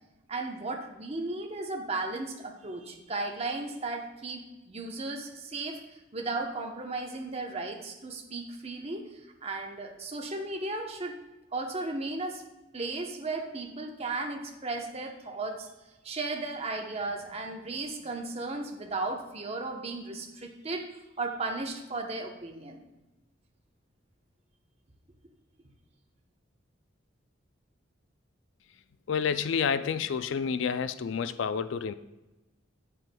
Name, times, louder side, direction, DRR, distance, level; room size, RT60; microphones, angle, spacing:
voice 1, 0.3-5.8 6.1-11.2 11.5-12.4 12.7-15.7 16.0-20.9 21.2-22.8, right 3 dB, 30° right, 0.9 m, -35 dB
voice 2, 29.1-31.9, left 6 dB, 70° left, 0.4 m, -29 dB
9.2 x 7.7 x 2.2 m
head